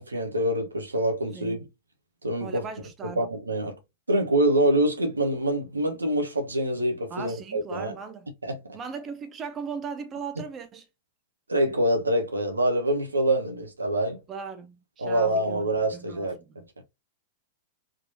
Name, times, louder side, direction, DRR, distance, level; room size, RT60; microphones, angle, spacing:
voice 1, 0.0-1.6 2.2-2.6 3.0-3.8 4.1-7.9 8.4-8.6 11.5-14.2 15.0-16.4 16.8-16.9, right 1 dB, 85° right, 0.9 m, -25 dB
voice 2, 1.3-1.7 2.4-3.3 7.1-8.3 8.7-10.9 14.3-16.5, right 5 dB, 30° right, 0.6 m, -38 dB
3.7 x 3.0 x 2.7 m
figure-of-eight pair, 95°, 0 cm